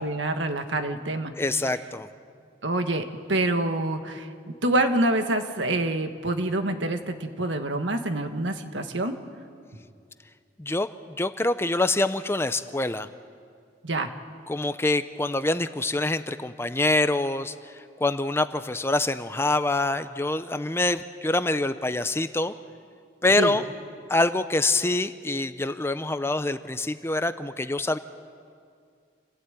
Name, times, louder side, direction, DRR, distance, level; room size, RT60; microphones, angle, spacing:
voice 1, 0.0-1.3 2.6-4.3 4.6-9.2 13.8-14.1 23.4-23.5, right 2 dB, 85° right, 6 dB, 1.7 m, -26 dB
voice 2, 1.4-2.1 10.6-10.9 11.2-13.1 14.5-17.5 18.0-22.5 23.2-23.6 24.1-28.0, left 2 dB, 15° left, 11 dB, 0.6 m, -25 dB
27.5 x 16.0 x 9.2 m, 2.3 s
head